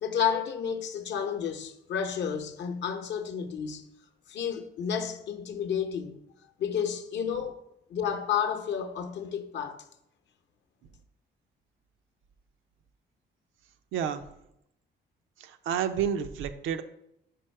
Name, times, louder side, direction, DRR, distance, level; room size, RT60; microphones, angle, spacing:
voice 1, 0.0-3.8 4.3-6.2 6.6-7.6 7.9-9.8, left 7 dB, 65° left, 0.7 m, -31 dB
voice 2, 13.9-14.3 15.4-16.8, right 8 dB, 80° right, 0.5 m, -30 dB
5.0 x 4.6 x 4.4 m
cardioid pair, 90°, 20 cm